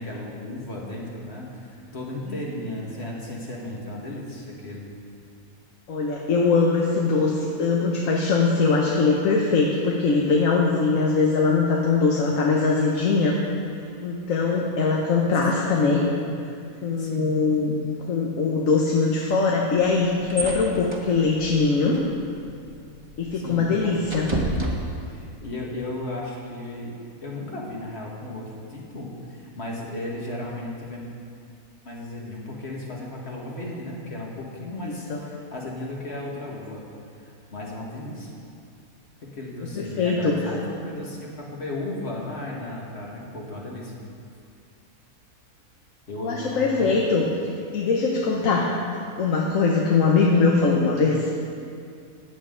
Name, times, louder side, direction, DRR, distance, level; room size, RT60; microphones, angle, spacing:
voice 1, 0.0-4.9 15.4-16.3 17.0-17.5 23.3-23.8 25.1-26.9 27.2-31.1 31.8-36.8 37.2-38.3 39.2-43.9 46.1-47.0, left 1 dB, 45° left, -3 dB, 1.9 m, -35 dB
voice 2, 5.9-13.4 14.0-16.0 16.8-22.0 23.2-24.3 34.8-35.2 39.8-40.4 46.2-47.2 47.7-48.7 49.2-51.3, left 4 dB, 65° left, -2 dB, 1.4 m, -22 dB
sound 1, 19.7-25.4, right 1 dB, 20° right, 1.0 m, -33 dB
14.5 x 8.8 x 3.8 m, 2.4 s
omnidirectional pair, 1.5 m